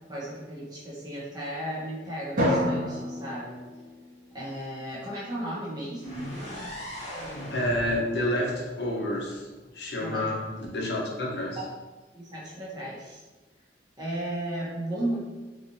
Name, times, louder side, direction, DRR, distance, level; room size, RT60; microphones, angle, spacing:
voice 1, 0.1-3.6 4.3-6.3 10.0-10.2 11.6-11.7 12.1-13.2 14.0-15.2, right 1 dB, 25° right, -7 dB, 1.1 m, -34 dB
Drum, 2.4-4.7, equal, 45° right, 1.1 m, -29 dB
sound 1, 6.0-9.9, equal, 40° left, 0.9 m, -39 dB
voice 2, 7.5-9.4 9.7-11.6, left 1 dB, 65° left, -3 dB, 0.9 m, -29 dB
3.9 x 3.2 x 2.7 m, 1.2 s
head